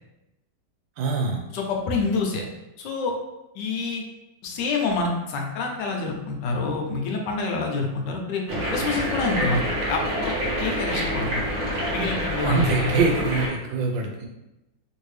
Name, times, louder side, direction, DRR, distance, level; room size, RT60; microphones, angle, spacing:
voice 1, 1.0-1.4 12.4-14.3, right 3 dB, 80° right, 2 dB, 1.3 m, -24 dB
voice 2, 1.5-2.4 2.8-3.1 3.5-4.0 4.4-8.4 8.7-10.3 10.6-11.5 11.9-13.1, left 3 dB, 75° left, 1 dB, 1.2 m, -27 dB
sound 1, 8.5-13.5, equal, 50° right, 1.0 m, -27 dB
3.2 x 2.6 x 3.1 m, 0.94 s
omnidirectional pair, 2.0 m